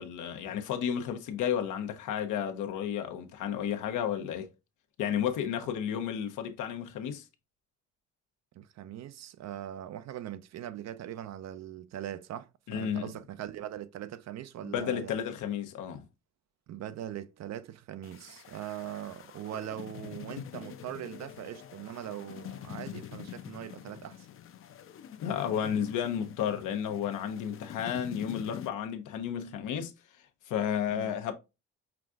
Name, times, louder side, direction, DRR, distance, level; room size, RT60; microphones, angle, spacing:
voice 1, 0.0-4.5 5.0-7.2 12.7-13.1 14.6-16.0 25.2-29.9 30.5-31.3, left 9 dB, 90° left, 0.8 m, -32 dB
voice 2, 8.5-15.2 16.7-24.3 30.9-31.1, right 11 dB, 60° right, 0.5 m, -41 dB
sound 1, 18.0-28.7, left 10 dB, 45° left, 0.5 m, -45 dB
5.8 x 2.5 x 2.4 m
cardioid pair, 90°, 30 cm